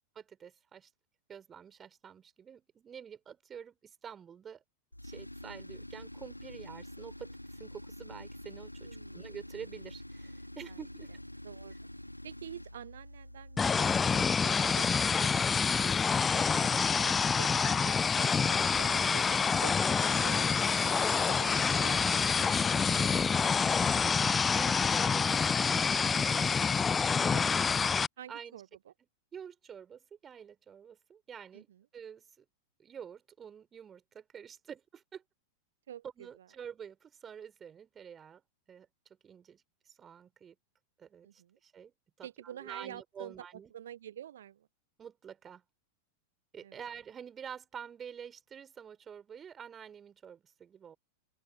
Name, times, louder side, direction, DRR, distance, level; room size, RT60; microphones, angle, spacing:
voice 1, 0.2-0.9 1.3-4.6 5.0-7.3 7.6-11.1 24.2-26.6 27.2-27.3 28.3-28.6 29.3-31.7 31.9-32.5 32.8-35.2 36.2-38.4 38.7-38.9 39.2-40.6 41.0-41.9 42.2-43.7 45.0-45.6 46.5-51.0, right 8 dB, 20° right, 5.2 m, -48 dB
Tools, 4.9-14.4, left 1 dB, 90° left, 1.5 m, -47 dB
voice 2, 8.8-9.2 10.7-10.8 11.4-11.7 12.2-19.2 19.6-22.0 22.4-23.6 27.3-27.4 28.2-28.9 31.5-31.8 35.9-36.5 41.2-41.6 42.2-43.3 43.7-44.7 46.6-46.8, right 10 dB, 60° right, 0.9 m, -48 dB
sound 1, 13.6-28.1, left 5 dB, 15° left, 0.3 m, -27 dB
open air
figure-of-eight pair, 90°, 0 cm